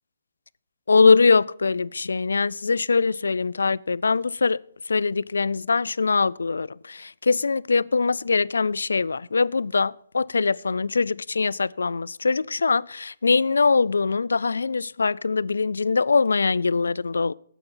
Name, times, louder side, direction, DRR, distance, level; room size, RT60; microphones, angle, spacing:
voice 1, 0.9-4.6 4.9-17.3, left 4 dB, 85° left, 0.3 m, -22 dB
9.0 x 8.0 x 5.4 m
hypercardioid pair, 155°, 0 cm